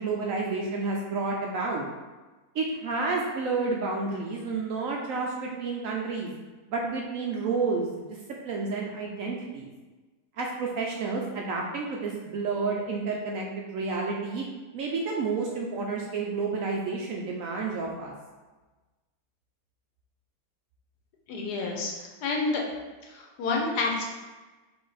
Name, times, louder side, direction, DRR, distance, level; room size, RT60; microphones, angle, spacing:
voice 1, 0.0-1.8 2.5-6.3 6.7-7.9 8.4-9.7 10.4-14.4 14.7-18.1, right 4 dB, 70° right, -1 dB, 0.8 m, -30 dB
voice 2, 21.3-22.6 23.1-24.1, left 3 dB, 75° left, 0 dB, 1.3 m, -29 dB
3.8 x 3.3 x 3.9 m, 1.2 s
omnidirectional pair, 1.8 m